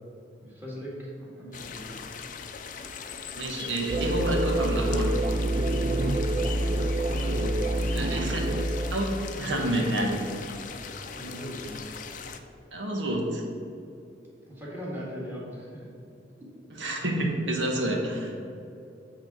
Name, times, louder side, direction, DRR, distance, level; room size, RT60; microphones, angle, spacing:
voice 1, 0.4-2.0 7.1-8.3 11.1-11.9 14.5-15.9, equal, 10° right, -6 dB, 1.8 m, -39 dB
sound 1, 1.5-12.4, left 6 dB, 45° left, 0.5 m, -40 dB
voice 2, 3.3-5.2 7.9-8.4 8.9-10.3 12.7-13.4 16.7-18.3, right 1 dB, 90° right, 0 dB, 1.2 m, -28 dB
sound 2, 3.9-9.0, right 1 dB, 35° right, 0.4 m, -27 dB
7.8 x 3.6 x 6.0 m, 2.6 s
head